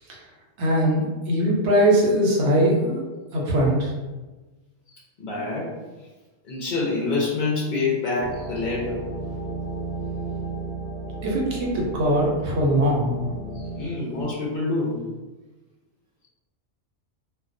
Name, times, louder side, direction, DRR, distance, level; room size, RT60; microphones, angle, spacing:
voice 1, 0.6-3.0 3.3-3.9 11.2-13.3, equal, 70° right, -3 dB, 0.9 m, -21 dB
voice 2, 4.9-5.7 6.4-9.0 13.5-15.0, left 3 dB, 60° left, -5 dB, 0.5 m, -27 dB
sound 1, 8.2-13.9, right 2 dB, 5° left, 0.7 m, -34 dB
2.2 x 2.2 x 2.5 m, 1.2 s
omnidirectional pair, 1.2 m